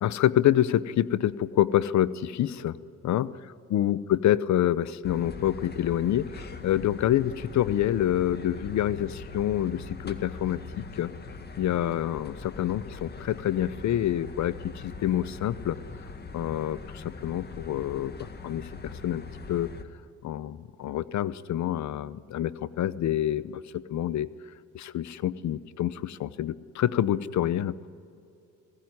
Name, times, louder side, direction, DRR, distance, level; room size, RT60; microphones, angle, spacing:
voice 1, 0.0-2.8 3.0-3.3 3.7-11.1 11.6-15.8 16.3-19.2 19.5-19.7 20.2-24.3 24.7-27.9, left 12 dB, 65° left, 17 dB, 0.8 m, -27 dB
sound 1, 5.0-19.8, left 4 dB, 35° left, 1.9 m, -42 dB
25.0 x 17.0 x 9.6 m, 2.6 s
cardioid pair, 90°, 30 cm